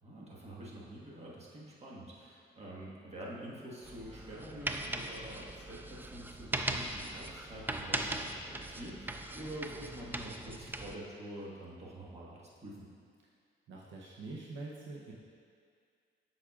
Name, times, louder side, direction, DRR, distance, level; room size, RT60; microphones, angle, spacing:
voice 1, 0.0-12.9, right 1 dB, 35° right, -5 dB, 1.5 m, -47 dB
sound 1, 3.8-11.0, right 2 dB, 10° right, 0.3 m, -39 dB
voice 2, 13.7-15.1, right 3 dB, 70° right, -3 dB, 0.8 m, -45 dB
8.4 x 6.3 x 2.4 m, 2.2 s
cardioid pair, 90°, 20 cm